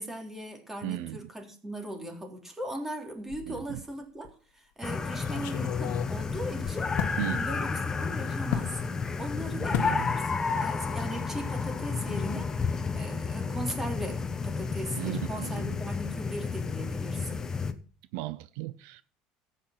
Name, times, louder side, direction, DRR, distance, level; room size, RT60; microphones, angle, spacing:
voice 1, 0.0-6.9 7.3-12.5 12.9-17.4, right 1 dB, 10° right, 3.6 m, -39 dB
voice 2, 0.8-1.3 3.5-3.8 7.2-7.5 9.6-10.1 14.9-15.8 18.1-19.0, right 17 dB, 80° right, 0.6 m, -36 dB
sound 1, 3.3-3.9 4.2-4.3 5.2-7.2 8.5-8.7 9.7-10.0 10.3-10.7 10.9-11.1, left 9 dB, 70° left, 1.4 m, -34 dB
sound 2, 4.8-17.7, left 5 dB, 20° left, 1.3 m, -31 dB
14.0 x 9.1 x 6.0 m
cardioid pair, 125°, 3 cm